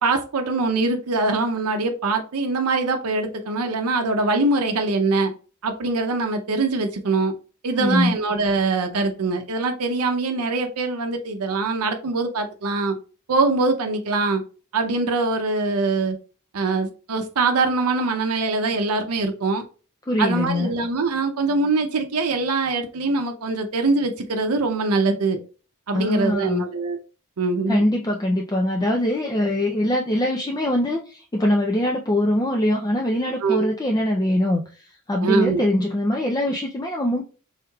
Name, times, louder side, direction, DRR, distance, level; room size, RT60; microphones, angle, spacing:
voice 1, 0.0-5.3 5.6-7.3 7.6-12.9 13.3-14.4 14.7-16.2 16.5-19.6 20.2-25.4 25.9-27.0 27.4-27.8 33.4-33.7 35.2-35.7, right 3 dB, 85° right, 5 dB, 0.6 m, -23 dB
voice 2, 7.8-8.1 20.1-20.7 25.9-26.6 27.7-37.2, left 1 dB, 15° left, 1 dB, 0.4 m, -22 dB
4.6 x 3.5 x 2.3 m, 0.36 s
head